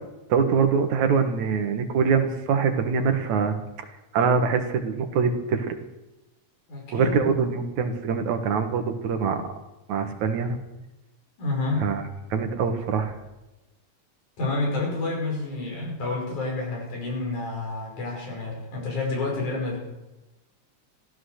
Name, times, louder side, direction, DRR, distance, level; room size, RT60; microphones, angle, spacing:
voice 1, 0.3-3.5 4.1-5.8 6.9-9.4 9.9-10.6 11.8-12.0 12.3-13.1, right 5 dB, 75° right, 6 dB, 2.9 m, -24 dB
voice 2, 6.7-7.3 11.4-11.9 14.4-19.8, left 3 dB, 90° left, -1 dB, 6.9 m, -29 dB
15.0 x 14.0 x 6.5 m, 1.0 s
omnidirectional pair, 3.4 m